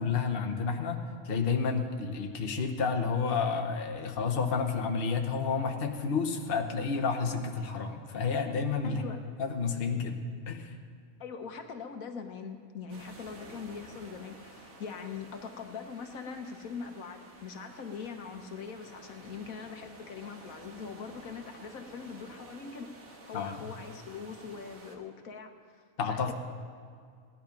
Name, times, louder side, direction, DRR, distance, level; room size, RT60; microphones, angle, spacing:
voice 1, 0.0-9.1 9.4-10.8 23.3-23.7 26.0-26.3, left 5 dB, 45° left, 4 dB, 1.2 m, -30 dB
voice 2, 8.8-9.2 11.2-26.3, left 5 dB, 75° left, 5 dB, 1.4 m, -42 dB
sound 1, 12.9-25.0, right 2 dB, 75° right, 2.0 m, -52 dB
17.0 x 11.5 x 5.2 m, 2.1 s
omnidirectional pair, 1.5 m